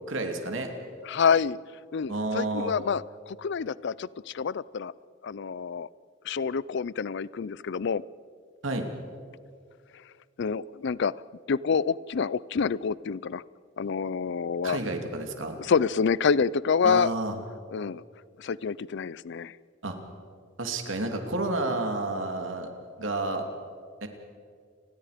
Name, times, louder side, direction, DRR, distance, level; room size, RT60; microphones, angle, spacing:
voice 1, 0.1-0.7 2.1-2.7 8.6-8.9 14.6-15.6 16.8-17.4 19.8-20.0 20.6-22.7 23.0-23.4 24.0-24.1, right 2 dB, 75° right, 4 dB, 2.8 m, -30 dB
voice 2, 1.0-1.6 1.9-4.9 5.2-5.9 6.2-8.0 10.4-11.1 11.5-13.4 13.8-14.8 15.6-17.1 17.7-18.0 18.4-19.6, left 6 dB, 60° left, 20 dB, 0.4 m, -27 dB
30.0 x 20.0 x 5.1 m, 2.1 s
head